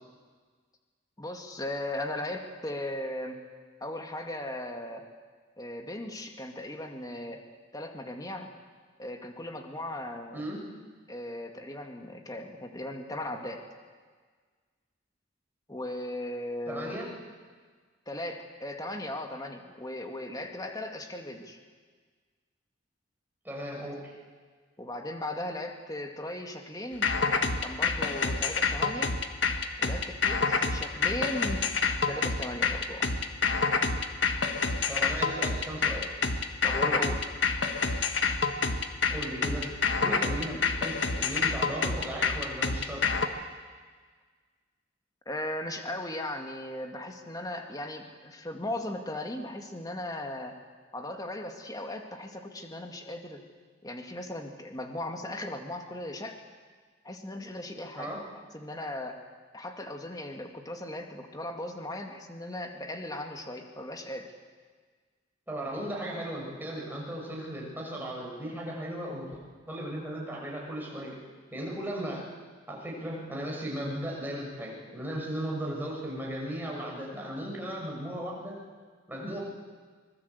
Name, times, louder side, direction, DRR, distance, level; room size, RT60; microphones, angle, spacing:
voice 1, 1.2-3.4 3.8-5.1 5.6-7.4 7.7-8.5 9.0-10.5 11.1-13.6 15.7-17.0 18.1-21.6 24.8-27.1 27.6-29.2 29.8-31.7 32.1-33.1 36.6-37.2 45.3-50.6 50.9-53.4 53.8-56.4 57.0-58.1 58.5-59.2 59.5-64.3, left 1 dB, 20° left, 4 dB, 2.1 m, -37 dB
voice 2, 10.3-10.6 16.7-17.1 23.4-24.1 34.9-36.2 39.1-39.7 40.0-43.0 58.0-58.2 65.5-69.4 69.7-71.2 71.5-72.3 72.7-78.6 79.1-79.4, right 1 dB, 10° right, -3 dB, 6.2 m, -36 dB
sound 1, 27.0-43.3, left 4 dB, 65° left, 1.6 m, -27 dB
24.5 x 20.0 x 8.2 m, 1.5 s
head